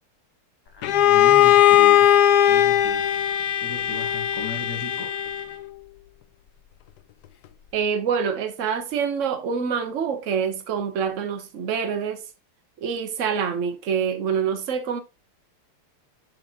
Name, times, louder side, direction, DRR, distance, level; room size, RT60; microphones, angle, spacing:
voice 1, 0.6-2.1 2.5-3.1 3.6-5.2, left 3 dB, 15° left, 0.9 m, -36 dB
Bowed string instrument, 0.8-5.6, left 11 dB, 85° left, 0.8 m, -18 dB
voice 2, 7.7-12.2 12.8-15.0, right 7 dB, 75° right, 0.7 m, -26 dB
10.5 x 3.9 x 2.9 m
omnidirectional pair, 2.4 m